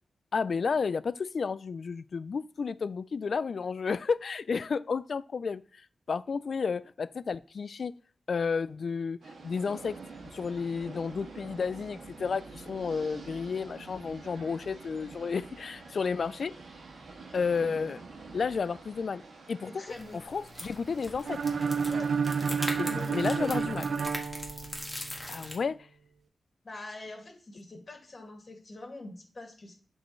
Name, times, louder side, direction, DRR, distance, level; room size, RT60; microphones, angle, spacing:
voice 1, 0.3-7.9 8.3-10.0 10.3-16.5 17.3-18.0 18.3-19.2 19.5-19.7 20.1-21.4 22.8-23.9 25.3-25.9, left 5 dB, 60° left, 0.3 m, -32 dB
sound 1, 9.2-23.5, right 3 dB, 90° right, 1.6 m, -48 dB
voice 2, 19.8-20.2 21.9-22.1 22.8-23.7 26.6-29.7, left 2 dB, 40° left, 2.2 m, -44 dB
sound 2, 19.9-25.6, left 1 dB, 5° left, 1.6 m, -41 dB
sound 3, 21.3-25.2, right 5 dB, 75° right, 0.5 m, -30 dB
11.0 x 4.4 x 3.2 m
wide cardioid pair, 100°, 0 cm